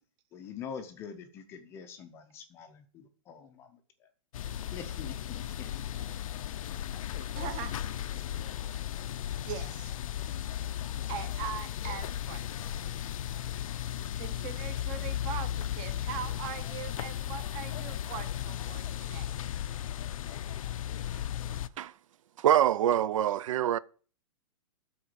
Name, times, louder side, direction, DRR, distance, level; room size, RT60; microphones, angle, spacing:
voice 1, 0.3-4.1 4.6-5.7, left 7 dB, 15° left, 0.5 m, -45 dB
sound 1, 4.3-21.7, left 11 dB, 80° left, 0.5 m, -36 dB
voice 2, 7.2-7.8 9.4-10.0 11.1-13.1 14.2-19.4, right 9 dB, 25° right, 0.7 m, -41 dB
voice 3, 22.4-23.8, right 11 dB, 75° right, 0.4 m, -25 dB
8.8 x 3.8 x 6.7 m
supercardioid pair, 170°, 17 cm